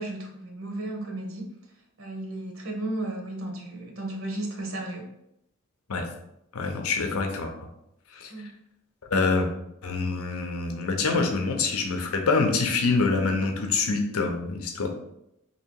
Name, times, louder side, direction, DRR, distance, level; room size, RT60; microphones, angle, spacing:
voice 1, 0.0-1.5 2.0-5.1 8.3-8.5, right 1 dB, 70° right, 1 dB, 0.8 m, -34 dB
voice 2, 6.5-7.5 8.1-8.3 9.1-9.5 9.8-14.9, left 4 dB, 85° left, 3 dB, 0.7 m, -25 dB
2.9 x 2.8 x 4.4 m, 0.81 s
head